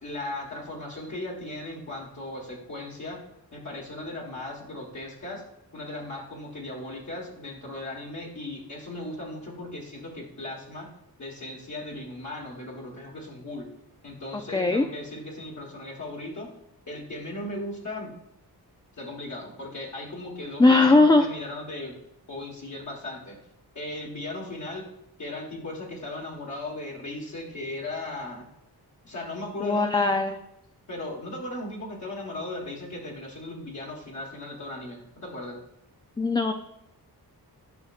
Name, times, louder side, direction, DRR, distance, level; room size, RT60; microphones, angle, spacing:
voice 1, 0.0-3.2 3.5-5.4 5.7-10.9 11.2-13.7 14.0-16.5 16.9-18.2 19.0-22.0 22.3-23.4 23.7-24.9 25.2-28.5 29.0-29.9 30.9-35.6, left 2 dB, 45° left, -3 dB, 1.5 m, -37 dB
voice 2, 14.3-14.9 20.6-21.3 29.6-30.4 36.2-36.5, left 2 dB, 10° left, 5 dB, 0.3 m, -19 dB
11.0 x 5.7 x 2.4 m, 0.84 s
wide cardioid pair, 90°, 39 cm